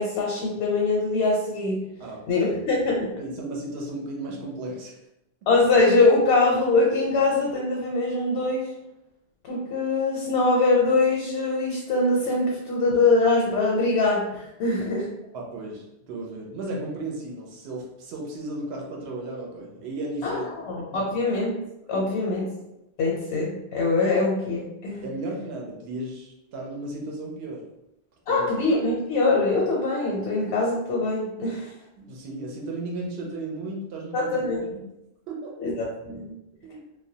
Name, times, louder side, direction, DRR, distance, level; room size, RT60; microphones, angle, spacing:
voice 1, 0.0-1.8 2.3-3.1 5.5-8.7 9.4-15.1 20.2-20.4 20.7-21.5 21.9-22.4 23.0-25.1 28.3-31.7 34.1-34.6 35.6-36.3, left 3 dB, 85° left, -3 dB, 0.8 m, -23 dB
voice 2, 2.0-2.4 3.1-5.0 15.3-20.5 20.9-21.1 25.0-27.6 28.3-28.5 32.0-34.8 35.3-35.5 36.6-36.8, right 2 dB, 80° right, -1 dB, 0.8 m, -35 dB
2.2 x 2.1 x 2.6 m, 0.88 s
omnidirectional pair, 1.1 m